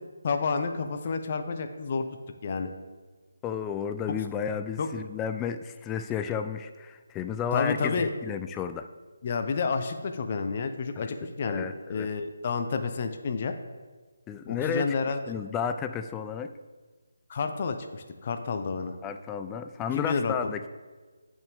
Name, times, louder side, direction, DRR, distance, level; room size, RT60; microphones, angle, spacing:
voice 1, 0.2-2.0 2.4-2.7 4.8-4.9 7.5-8.1 9.2-13.5 14.5-15.2 17.3-19.0 19.9-20.5, left 5 dB, 35° left, 7 dB, 0.7 m, -30 dB
voice 2, 3.4-8.9 11.0-11.1 11.5-12.1 14.3-16.5 19.0-20.7, left 7 dB, 15° left, 8 dB, 0.4 m, -32 dB
10.5 x 6.2 x 3.6 m, 1.4 s
figure-of-eight pair, 150°, 0 cm